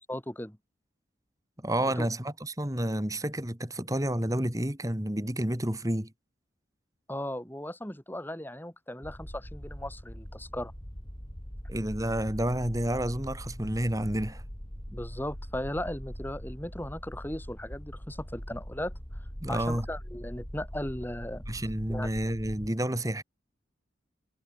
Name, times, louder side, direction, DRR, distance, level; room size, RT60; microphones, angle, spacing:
voice 1, 0.1-0.6 2.0-2.1 7.1-10.7 14.9-19.2 19.5-21.4 21.9-22.1, left 1 dB, 10° left, 2.6 m, -37 dB
voice 2, 1.6-6.1 11.7-14.4 19.4-19.9 21.5-23.2, right 1 dB, 20° right, 2.5 m, -30 dB
sound 1, 9.0-22.7, equal, 25° left, 4.3 m, -42 dB
head